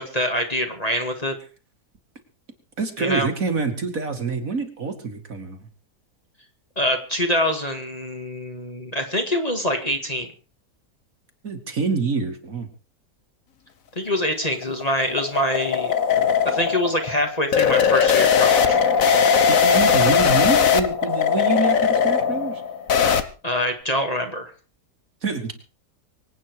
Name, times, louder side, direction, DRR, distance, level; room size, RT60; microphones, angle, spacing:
voice 1, 0.0-1.4 3.0-3.3 6.8-10.3 14.0-15.9 16.4-18.8 23.4-24.5, left 1 dB, 25° left, 4 dB, 2.3 m, -25 dB
voice 2, 2.8-5.7 11.4-12.7 19.5-22.6 25.2-25.5, right 4 dB, 55° right, 5 dB, 2.6 m, -26 dB
sound 1, 14.3-23.2, left 7 dB, 55° left, 1.5 m, -19 dB
24.5 x 9.1 x 4.8 m, 0.37 s
omnidirectional pair, 1.7 m